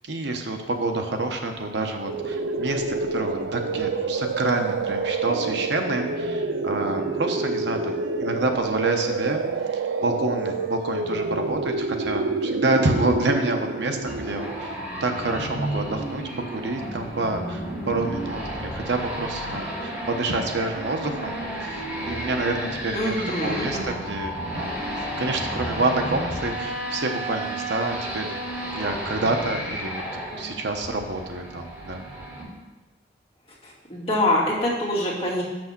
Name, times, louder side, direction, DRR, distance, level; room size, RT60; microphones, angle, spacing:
voice 1, 0.0-2.8 3.1-9.4 10.0-16.2 16.5-23.1 23.4-24.7 25.0-28.3 28.7-30.0 30.3-32.0, right 2 dB, 65° right, 4 dB, 0.8 m, -28 dB
sound 1, 2.1-14.9, right 3 dB, 85° right, 0.5 m, -28 dB
sound 2, 14.0-32.4, right 1 dB, 10° right, 2.7 m, -32 dB
voice 2, 22.9-24.0 33.6-35.4, left 1 dB, 30° left, -7 dB, 2.4 m, -25 dB
7.1 x 6.2 x 5.9 m, 1.2 s
head